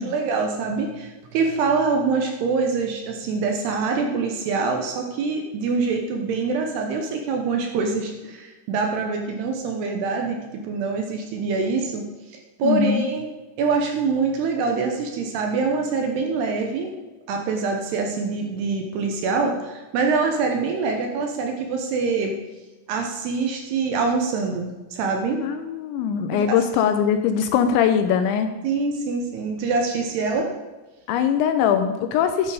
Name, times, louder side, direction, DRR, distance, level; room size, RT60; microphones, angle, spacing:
voice 1, 0.0-13.3 13.6-16.9 17.3-22.3 22.9-25.4 26.3-26.6 28.6-30.5, right 4 dB, 70° right, 3 dB, 2.7 m, -25 dB
voice 2, 12.6-13.1 25.4-28.5 31.1-32.5, left 8 dB, 80° left, 8 dB, 2.8 m, -21 dB
12.5 x 9.1 x 5.0 m, 1.2 s
omnidirectional pair, 5.6 m